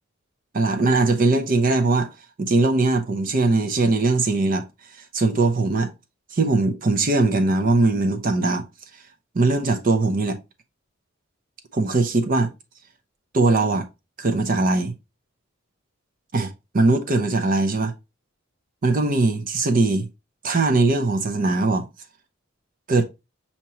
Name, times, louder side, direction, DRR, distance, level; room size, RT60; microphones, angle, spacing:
voice 1, 0.5-2.1 2.4-4.6 5.1-5.9 6.3-8.7 9.3-10.4 11.7-12.5 13.3-13.9 14.2-14.9 16.3-17.9 18.8-20.1 20.4-21.9 22.9-23.0, right 3 dB, 40° right, 0.5 m, -20 dB
5.6 x 2.9 x 2.9 m
head